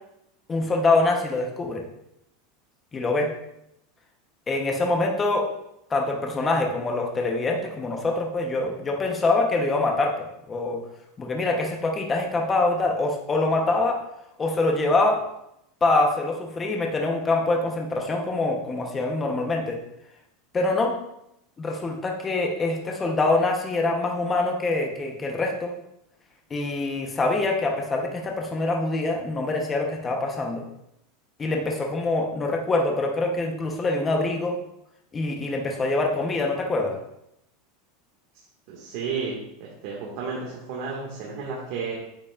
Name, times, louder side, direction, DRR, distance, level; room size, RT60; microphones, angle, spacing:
voice 1, 0.5-1.8 2.9-3.3 4.5-5.5 5.9-10.8 11.2-14.0 14.4-15.2 15.8-19.8 20.5-21.0 21.6-25.7 26.5-30.6 31.4-34.6 35.1-37.0, left 2 dB, 15° left, 1 dB, 0.9 m, -24 dB
voice 2, 38.7-39.3 39.6-42.0, right 5 dB, 50° right, -4 dB, 1.8 m, -32 dB
8.8 x 8.2 x 2.4 m, 0.81 s
supercardioid pair, 165°, 0 cm